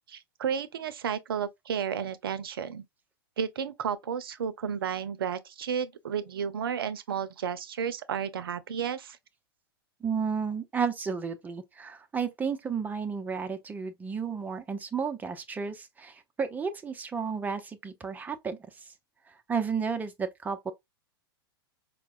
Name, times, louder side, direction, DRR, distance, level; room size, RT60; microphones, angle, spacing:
voice 1, 0.1-2.8 3.4-9.2, right 7 dB, 70° right, 0.5 m, -32 dB
voice 2, 10.0-18.6 19.5-20.7, right 6 dB, 15° right, 0.5 m, -32 dB
4.5 x 2.1 x 2.4 m
figure-of-eight pair, 100°, 13 cm